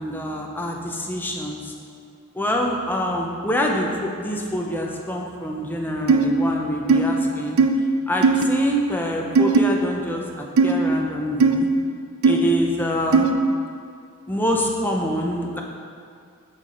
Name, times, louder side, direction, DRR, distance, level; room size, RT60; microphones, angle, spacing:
voice 1, 0.0-1.7 2.3-7.6 8.1-11.7 12.2-13.3 14.3-15.6, equal, 10° left, 0 dB, 0.8 m, -25 dB
sound 1, 6.1-6.3 6.9-7.0 7.6-7.7 8.2-8.4 9.4-9.6 10.6-10.7 11.4-11.6 12.2-12.4 13.1-13.3, right 5 dB, 80° right, 0.5 m, -16 dB
7.0 x 6.9 x 3.9 m, 2.4 s
head